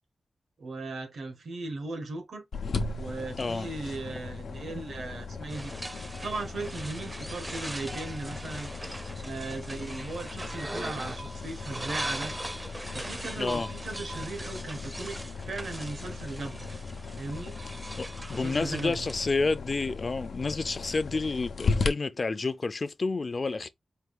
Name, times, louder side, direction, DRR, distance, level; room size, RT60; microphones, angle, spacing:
voice 1, 0.6-2.4 3.0-5.7 6.2-8.7 9.2-12.3 12.9-15.2 15.4-16.7 17.2-17.6 18.3-19.1, right 3 dB, 90° right, 1.2 m, -37 dB
sound 1, 2.5-21.9, left 4 dB, 90° left, 0.7 m, -37 dB
sound 2, 5.5-19.3, right 1 dB, 20° right, 0.5 m, -40 dB
voice 2, 13.4-13.7 18.0-23.7, left 3 dB, 45° left, 0.5 m, -30 dB
4.6 x 2.4 x 3.6 m
wide cardioid pair, 100°, 0 cm